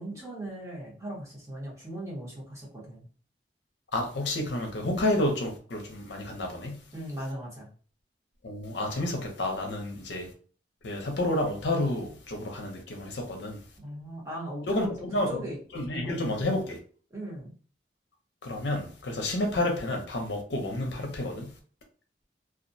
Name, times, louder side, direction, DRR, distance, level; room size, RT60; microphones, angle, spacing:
voice 1, 0.0-3.1 6.9-7.7 13.8-16.4 17.1-17.5, right 1 dB, 15° right, 0.8 m, -38 dB
voice 2, 3.9-6.8 8.4-10.3 10.8-13.6 14.7-15.3 15.7-16.8 18.4-21.5, left 1 dB, 75° left, 0.6 m, -30 dB
2.3 x 2.1 x 2.6 m
head